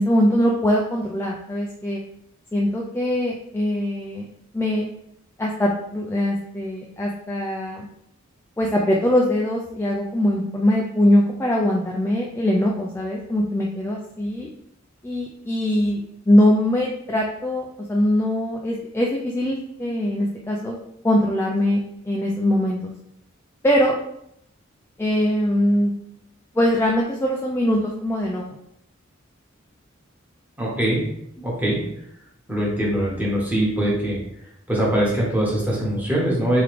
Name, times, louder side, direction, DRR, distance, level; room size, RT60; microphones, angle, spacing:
voice 1, 0.0-2.0 2.5-4.3 4.5-4.9 5.4-7.8 8.6-14.5 15.0-20.8 21.0-21.8 22.0-22.8 23.6-24.0 25.0-25.9 26.5-28.6, left 1 dB, 10° left, -2 dB, 0.3 m, -22 dB
voice 2, 30.6-31.0 31.4-31.8 32.5-34.2 34.7-36.6, right 1 dB, 10° right, -5 dB, 1.2 m, -22 dB
3.6 x 3.2 x 3.4 m, 0.76 s
head